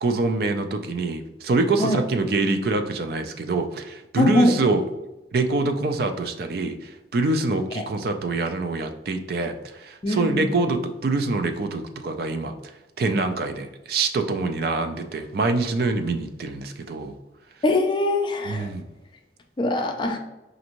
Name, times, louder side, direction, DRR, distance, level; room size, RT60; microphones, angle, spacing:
voice 1, 0.0-4.8 5.3-12.5 13.0-17.2 18.4-18.8, right 3 dB, 55° right, 7 dB, 0.4 m, -25 dB
voice 2, 4.2-4.6 10.0-10.6 17.6-18.7 19.6-20.2, left 1 dB, 25° left, 3 dB, 0.4 m, -22 dB
5.1 x 2.6 x 2.9 m, 0.99 s
head